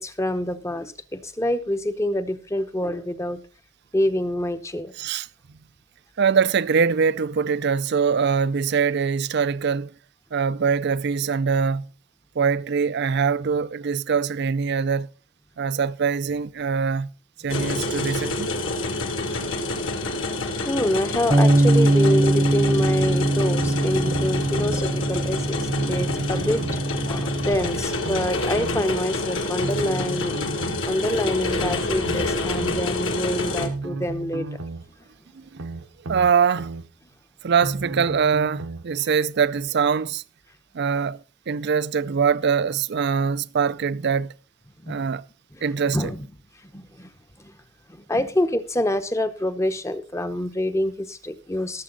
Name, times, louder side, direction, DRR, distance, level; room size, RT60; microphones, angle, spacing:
voice 1, 0.0-3.4 3.9-4.9 20.6-26.6 26.9-30.4 30.9-34.6 44.8-45.0 45.5-45.6 45.9-46.3 46.6-47.1 47.4-47.5 47.9-51.8, left 1 dB, 15° left, 0.8 m, -26 dB
voice 2, 6.2-9.9 10.3-11.9 12.4-15.1 15.6-17.1 17.4-18.5 35.3-35.7 36.1-36.7 37.4-40.2 40.7-44.3 44.9-45.2 45.6-46.1, right 6 dB, 55° right, 0.5 m, -23 dB
sound 1, 17.5-33.7, left 2 dB, 65° left, 2.0 m, -28 dB
Bass guitar, 21.3-27.6, right 1 dB, 25° right, 0.8 m, -22 dB
sound 2, 23.6-24.8 25.6-26.9 27.6-28.8 29.6-30.9 31.6-32.8 33.6-34.9 35.6-36.8 37.6-38.9 39.6-39.7, right 2 dB, 75° right, 1.0 m, -33 dB
17.5 x 7.4 x 3.9 m
head